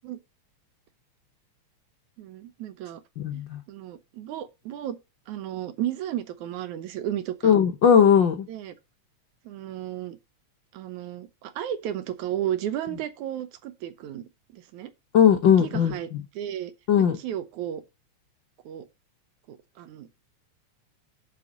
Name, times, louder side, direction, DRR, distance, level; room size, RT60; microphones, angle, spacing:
voice 1, 2.2-3.0 3.3-3.4 3.7-5.0 5.3-7.6 8.5-8.7 9.5-10.2 10.7-14.2 14.5-14.9 15.6-16.1 16.3-16.7 17.1-17.8 18.7-18.9 19.5-20.1, right 11 dB, 80° right, 2.4 m, -33 dB
voice 2, 3.2-3.6 7.4-8.5 15.1-15.9 16.9-17.2, left 8 dB, 75° left, 1.1 m, -18 dB
6.9 x 6.0 x 7.3 m
omnidirectional pair, 3.4 m